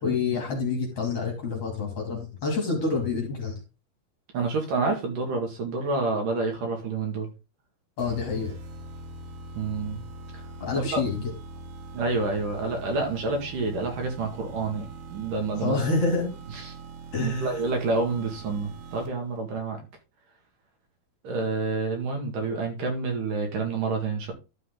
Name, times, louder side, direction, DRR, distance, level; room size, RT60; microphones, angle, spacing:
voice 1, 0.0-3.6 8.0-8.5 10.6-11.3 15.5-16.3 17.1-17.5, left 4 dB, 45° left, 1 dB, 3.2 m, -27 dB
voice 2, 4.3-7.3 9.6-10.0 10.7-11.0 11.9-15.8 16.5-16.7 17.2-19.8 21.2-24.3, right 3 dB, 60° right, 2 dB, 3.6 m, -28 dB
sound 1, 8.0-19.4, right 2 dB, 90° right, 3.4 m, -42 dB
12.5 x 5.6 x 3.8 m, 0.28 s
omnidirectional pair, 4.4 m